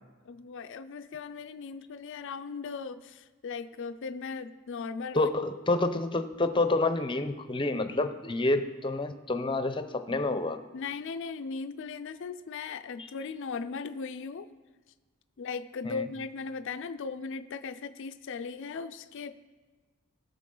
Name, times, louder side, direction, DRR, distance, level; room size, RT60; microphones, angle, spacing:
voice 1, 0.3-5.3 10.7-14.5 15.4-19.3, left 5 dB, 60° left, 9 dB, 0.4 m, -38 dB
voice 2, 5.1-10.6 15.8-16.1, left 2 dB, 25° left, 9 dB, 0.6 m, -28 dB
20.0 x 6.8 x 3.8 m, 1.3 s
head